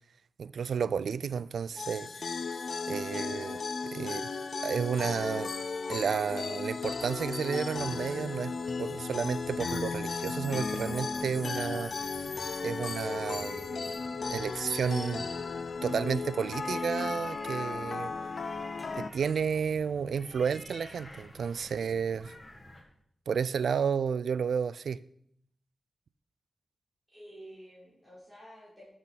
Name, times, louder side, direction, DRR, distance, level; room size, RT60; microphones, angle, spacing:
voice 1, 0.4-2.3 2.9-4.3 4.6-5.5 5.9-12.1 12.6-13.9 14.3-15.3 15.8-18.1 19.0-22.3 23.3-25.0, right 6 dB, 90° right, 0.3 m, -32 dB
sound 1, 1.8-19.1, left 4 dB, 60° left, 0.6 m, -35 dB
sound 2, 9.0-22.8, left 1 dB, 20° left, 2.2 m, -52 dB
voice 2, 10.9-11.2 27.1-28.9, equal, 5° right, 4.2 m, -50 dB
13.5 x 6.1 x 4.1 m
wide cardioid pair, 95°, 0 cm